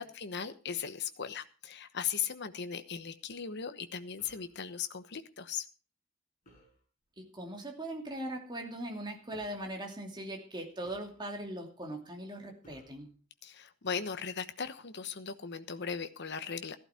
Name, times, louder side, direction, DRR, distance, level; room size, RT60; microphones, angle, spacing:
voice 1, 0.0-5.7 13.4-16.8, left 7 dB, 55° left, 10 dB, 1.1 m, -38 dB
sound 1, 4.2-4.6 6.4-6.8 8.0-8.3 9.3-9.7 10.8-11.5 12.6-13.1, right 1 dB, 40° left, 7.9 m, -60 dB
voice 2, 7.2-13.1, right 1 dB, 20° right, 2 dB, 2.6 m, -40 dB
14.5 x 12.0 x 4.4 m, 0.36 s
head